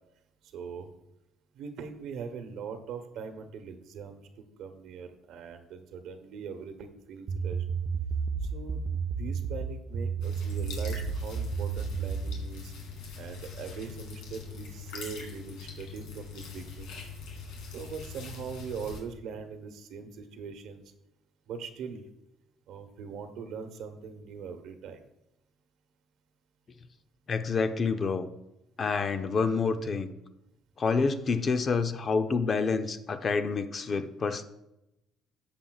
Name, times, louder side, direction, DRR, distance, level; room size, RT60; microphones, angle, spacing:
voice 1, 0.4-0.9 1.5-7.6 8.4-8.8 9.2-12.7 13.1-17.0 17.7-20.9 21.5-22.0 22.7-25.0, right 6 dB, 65° right, 7 dB, 1.0 m, -41 dB
sound 1, 7.3-12.5, right 5 dB, 50° right, 0.5 m, -32 dB
sound 2, 10.2-19.0, left 5 dB, 85° left, 2.4 m, -43 dB
voice 2, 27.3-28.3 28.8-30.1 30.8-34.4, left 4 dB, 30° left, 9 dB, 0.5 m, -28 dB
12.0 x 7.1 x 2.4 m, 0.89 s
cardioid pair, 150°, 0 cm